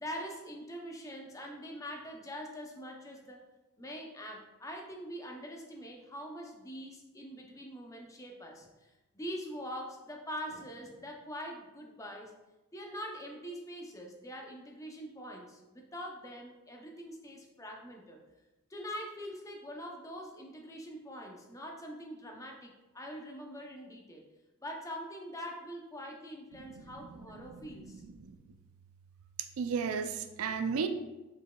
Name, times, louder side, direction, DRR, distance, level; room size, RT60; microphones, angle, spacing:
voice 1, 0.0-3.4 3.8-12.3 12.7-18.2 18.7-24.2 24.6-28.0, equal, 15° left, 1 dB, 0.5 m, -44 dB
voice 2, 27.4-28.3 29.6-30.9, right 6 dB, 70° right, 8 dB, 0.4 m, -35 dB
5.0 x 4.5 x 2.2 m, 1.0 s
head